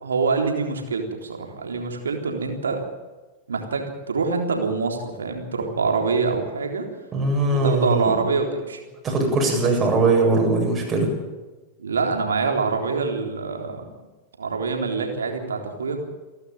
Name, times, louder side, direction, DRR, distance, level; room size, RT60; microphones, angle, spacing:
voice 1, 0.0-2.8 3.5-6.9 7.3-8.8 11.8-13.9 14.4-16.0, right 4 dB, 70° right, 3 dB, 3.6 m, -25 dB
voice 2, 7.1-8.1 9.0-11.1, right 2 dB, 20° right, 0 dB, 7.9 m, -20 dB
28.5 x 12.0 x 9.1 m, 1.2 s
figure-of-eight pair, 90°, 0 cm